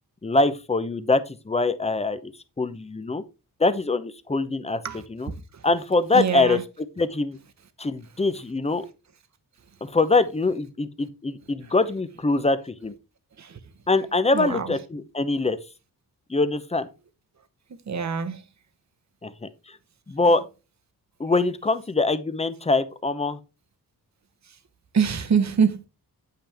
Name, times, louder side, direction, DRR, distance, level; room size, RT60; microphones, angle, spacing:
voice 1, 0.2-2.3 2.6-3.2 3.6-4.8 5.1-5.3 5.6-6.6 7.0-7.4 7.8-8.8 9.8-12.9 13.9-15.6 16.3-16.9 19.2-19.8 20.1-20.4 21.2-23.4, left 3 dB, 15° left, 0.8 m, -23 dB
voice 2, 6.1-6.6 13.4-13.6 14.3-14.7 17.7-18.4 20.2-20.3 24.5-24.6 24.9-25.9, right 6 dB, 45° right, 1.1 m, -25 dB
8.7 x 5.8 x 3.5 m
cardioid pair, 90°, 39 cm